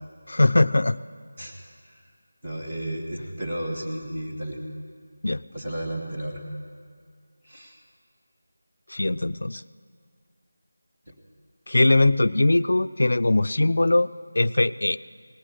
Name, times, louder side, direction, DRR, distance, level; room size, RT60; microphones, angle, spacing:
voice 1, 0.3-1.0 5.2-5.4 8.9-9.6 11.7-15.0, left 2 dB, 70° left, 14 dB, 0.3 m, -21 dB
voice 2, 2.4-4.6 5.5-6.4 7.4-7.8 11.1-11.2, right 1 dB, 25° right, -1 dB, 1.7 m, -33 dB
18.5 x 6.4 x 9.7 m, 2.2 s
figure-of-eight pair, 180°, 0 cm